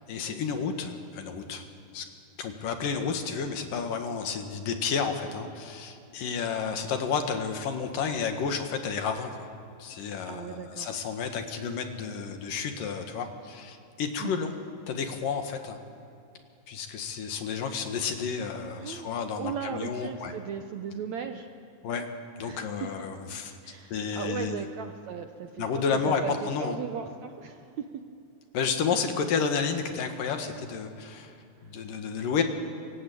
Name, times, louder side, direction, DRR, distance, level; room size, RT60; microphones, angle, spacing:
voice 1, 0.1-1.6 1.9-2.0 2.4-9.5 9.8-14.5 14.9-15.8 16.7-20.3 21.8-22.1 22.4-23.5 23.9-24.6 25.6-26.8 28.5-32.4, left 6 dB, 65° left, 5 dB, 3.2 m, -31 dB
voice 2, 10.3-10.9 14.2-14.5 18.8-21.5 22.4-22.9 23.6-27.9, right 7 dB, 70° right, 6 dB, 1.8 m, -37 dB
28.5 x 23.0 x 8.6 m, 2.6 s
omnidirectional pair, 4.3 m